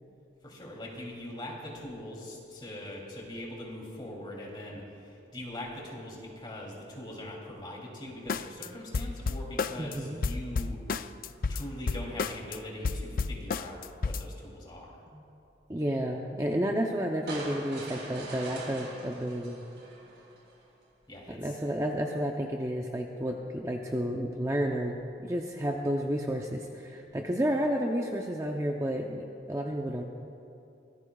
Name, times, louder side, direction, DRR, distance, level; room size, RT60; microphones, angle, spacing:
voice 1, 0.4-15.0 21.1-21.7, left 1 dB, 25° left, -3 dB, 2.9 m, -42 dB
sound 1, 8.3-8.7 8.9-9.9 10.2-12.6 12.8-14.3, left 4 dB, 50° left, 0.4 m, -31 dB
voice 2, 9.8-10.2 15.1-15.2 15.7-19.6 21.3-30.0, equal, 15° right, 1 dB, 0.6 m, -31 dB
sound 2, 17.3-20.5, right 2 dB, 90° right, 4.2 m, -42 dB
24.0 x 18.5 x 2.4 m, 2.7 s
head